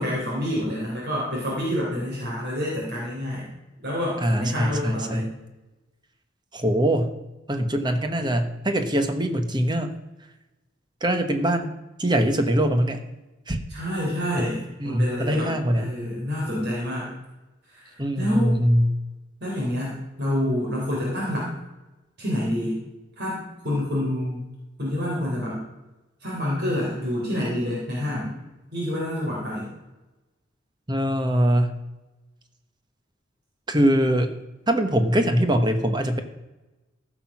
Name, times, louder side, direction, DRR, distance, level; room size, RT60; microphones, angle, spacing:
voice 1, 0.0-3.5 3.8-5.3 13.7-17.1 17.7-18.5 19.4-21.5 22.2-22.8 23.2-24.4 24.8-25.6 26.2-28.3 28.7-29.7, left 1 dB, 55° right, -5 dB, 3.5 m, -27 dB
voice 2, 4.2-5.3 6.5-7.1 7.5-9.9 11.0-11.7 12.0-13.0 13.5-13.6 14.4-14.5 14.8-15.9 18.0-19.0 30.9-31.8 33.7-34.3 34.7-36.2, equal, 25° right, 7 dB, 1.0 m, -22 dB
14.5 x 6.0 x 6.0 m, 1.1 s
head